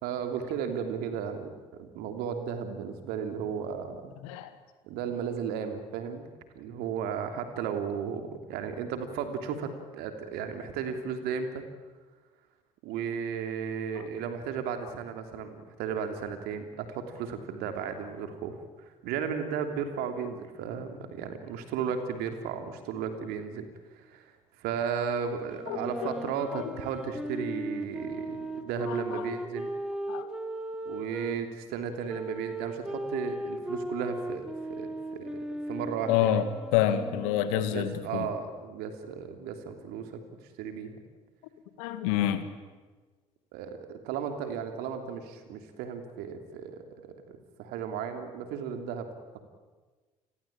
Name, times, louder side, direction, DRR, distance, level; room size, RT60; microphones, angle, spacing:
voice 1, 0.0-4.2 4.8-6.3 6.5-11.6 12.8-29.7 30.8-36.3 37.5-40.2 40.6-41.0 43.5-49.1 49.3-49.4, right 7 dB, 65° right, 7 dB, 3.2 m, -35 dB
sound 1, 25.5-31.4 32.1-37.5, right 1 dB, 5° right, 3.1 m, -37 dB
voice 2, 28.9-29.2 30.1-30.3 36.1-38.3 41.8-42.4, left 11 dB, 70° left, 11 dB, 2.0 m, -28 dB
29.0 x 22.0 x 8.9 m, 1.3 s
figure-of-eight pair, 50°, 18 cm